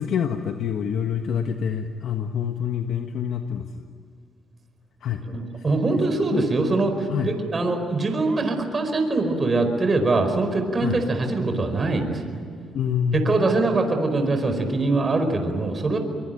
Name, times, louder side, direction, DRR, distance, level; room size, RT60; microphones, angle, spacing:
voice 1, 0.0-3.9 5.0-5.2 5.5-5.6 5.9-6.0 6.3-6.4 7.1-7.4 10.8-11.0 12.7-13.5, left 8 dB, 70° left, 5 dB, 1.4 m, -27 dB
voice 2, 5.2-12.4 13.1-16.0, right 2 dB, 35° right, 6 dB, 4.9 m, -23 dB
24.5 x 23.5 x 9.1 m, 2.2 s
cardioid pair, 90°, 0 cm